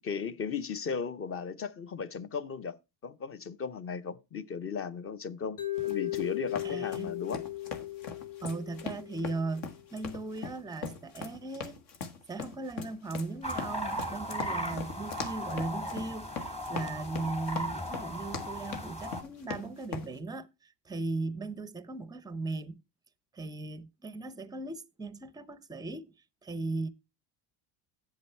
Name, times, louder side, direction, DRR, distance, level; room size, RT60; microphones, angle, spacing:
voice 1, 0.0-7.4 14.6-14.9, left 6 dB, 30° left, 0.7 m, -36 dB
Mallet percussion, 5.6-9.7, left 15 dB, 80° left, 2.2 m, -37 dB
sound 1, 5.8-20.1, left 5 dB, 65° left, 1.7 m, -41 dB
voice 2, 6.6-7.2 8.4-11.8 12.3-16.3 16.7-22.8 23.3-26.1 26.4-26.9, right 3 dB, 10° right, 0.5 m, -37 dB
sound 2, 13.4-19.2, equal, 15° left, 1.4 m, -37 dB
7.9 x 7.2 x 4.3 m
supercardioid pair, 105°, 45 cm